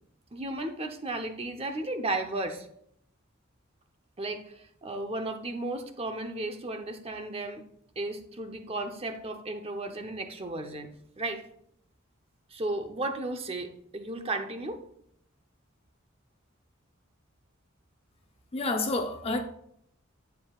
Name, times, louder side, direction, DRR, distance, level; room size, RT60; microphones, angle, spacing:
voice 1, 0.3-2.7 4.2-7.6 8.0-10.9 11.2-11.4 12.5-14.8, right 2 dB, 30° right, 0.9 m, -34 dB
voice 2, 18.5-19.4, left 2 dB, 30° left, 0.8 m, -29 dB
10.5 x 9.2 x 2.4 m
head